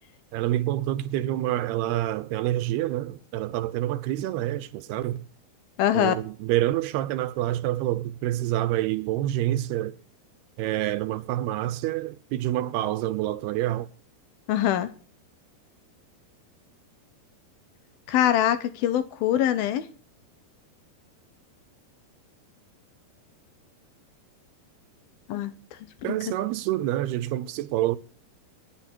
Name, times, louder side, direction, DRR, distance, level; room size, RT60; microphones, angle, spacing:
voice 1, 0.3-5.2 5.9-10.0 10.6-13.9 26.0-28.0, right 14 dB, 75° right, 2.8 m, -27 dB
voice 2, 5.8-6.1 14.5-14.9 18.1-19.9 25.3-25.5 26.0-26.2, left 11 dB, 70° left, 2.6 m, -23 dB
26.0 x 10.5 x 4.5 m
omnidirectional pair, 4.8 m